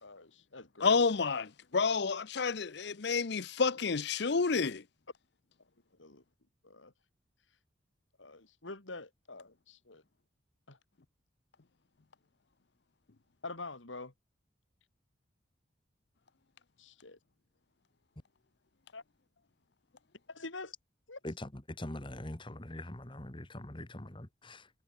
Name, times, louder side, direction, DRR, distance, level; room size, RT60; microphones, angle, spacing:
voice 1, 0.0-1.0 5.9-6.2 6.6-6.9 8.2-10.0 10.7-10.8 13.4-14.1 16.8-17.2 18.9-19.0 20.3-20.7 21.1-21.2, left 3 dB, 85° left, 3.2 m, -46 dB
voice 2, 0.8-4.8, left 4 dB, 60° left, 0.7 m, -29 dB
voice 3, 21.2-24.7, left 1 dB, 25° left, 1.7 m, -43 dB
head